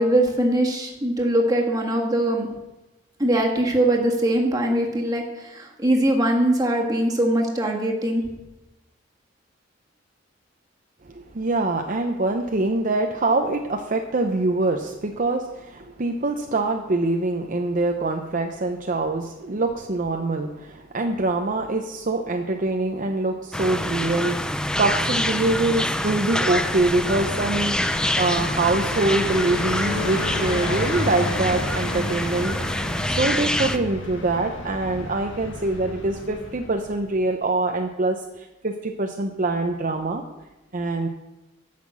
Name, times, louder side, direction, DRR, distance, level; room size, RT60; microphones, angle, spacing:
voice 1, 0.0-2.5 3.2-8.3, right 1 dB, 20° right, 0 dB, 1.7 m, -21 dB
voice 2, 11.1-27.9 28.2-32.5 33.0-40.2 40.7-41.1, right 2 dB, 45° right, 4 dB, 0.7 m, -24 dB
sound 1, 23.5-33.8, left 1 dB, 5° left, 0.4 m, -26 dB
Car passing by, 26.6-37.2, left 2 dB, 75° left, 1.8 m, -32 dB
11.5 x 5.9 x 7.4 m, 1.1 s
head